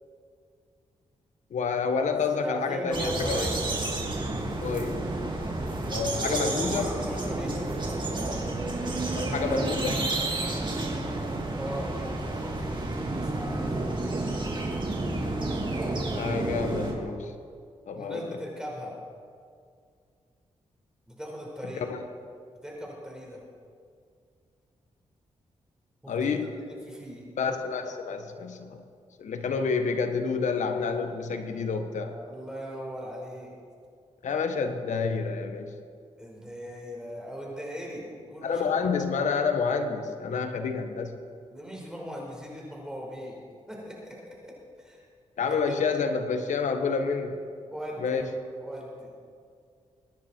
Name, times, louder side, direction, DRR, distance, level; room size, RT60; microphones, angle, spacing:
voice 1, 1.5-3.5 4.6-5.0 5.8-6.9 9.1-10.1 16.1-17.3 17.9-18.3 21.7-22.0 26.1-26.6 27.4-28.8 29.2-32.2 34.2-35.8 38.4-41.1 45.4-47.4 48.0-48.3, left 5 dB, 80° left, 7 dB, 1.3 m, -29 dB
voice 2, 2.1-3.8 6.0-7.7 11.5-13.8 17.9-18.9 21.1-21.8 22.6-23.4 26.0-26.4 26.7-27.3 32.1-33.5 36.2-38.7 41.5-43.4 43.7-44.5 44.8-45.0 45.5-45.8 47.7-48.3 48.6-49.1, equal, 5° right, -2 dB, 4.9 m, -38 dB
sound 1, 2.9-16.9, right 2 dB, 40° right, 2.9 m, -30 dB
22.5 x 10.5 x 4.6 m, 2.2 s
cardioid pair, 65°, 12 cm